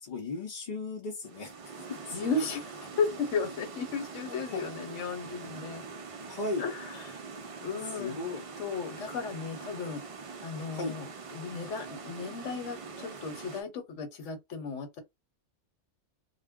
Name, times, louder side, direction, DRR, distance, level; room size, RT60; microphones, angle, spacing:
voice 1, 0.0-1.5 1.9-2.4 4.5-4.6 6.3-6.6 8.0-8.4 10.7-11.0, left 3 dB, 45° left, 0.6 m, -36 dB
sound 1, 1.2-13.6, right 4 dB, 55° right, 0.3 m, -44 dB
voice 2, 2.1-2.6 3.0-5.8 6.6-7.2 7.6-8.2 8.6-10.0 10.4-15.0, left 5 dB, 80° left, 1.1 m, -34 dB
2.3 x 2.1 x 3.4 m
omnidirectional pair, 1.2 m